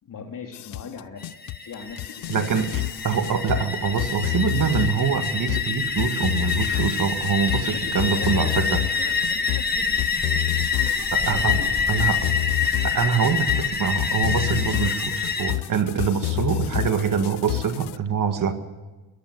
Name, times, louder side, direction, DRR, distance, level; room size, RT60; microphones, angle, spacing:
voice 1, 0.0-1.3 1.6-2.5 7.6-10.0 11.2-12.1 14.7-15.0, left 6 dB, 50° left, 4 dB, 2.8 m, -40 dB
sound 1, 0.5-18.0, left 17 dB, 70° left, 0.6 m, -29 dB
sound 2, 1.2-15.5, left 5 dB, 20° left, 1.6 m, -27 dB
voice 2, 2.3-2.7 3.0-9.1 11.1-12.3 12.8-18.5, right 7 dB, 50° right, 8 dB, 1.8 m, -24 dB
22.0 x 13.5 x 9.4 m, 1.2 s
cardioid pair, 90°, 42 cm